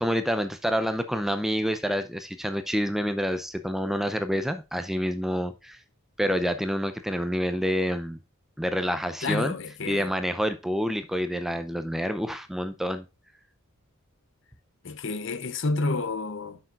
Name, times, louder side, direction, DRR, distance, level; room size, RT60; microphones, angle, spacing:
voice 1, 0.0-5.8 6.2-8.2 8.6-9.6 9.9-13.0, equal, ahead, 0.6 m, -28 dB
voice 2, 9.2-10.1 14.8-16.6, left 3 dB, 55° left, 0.7 m, -29 dB
9.7 x 6.8 x 2.5 m
head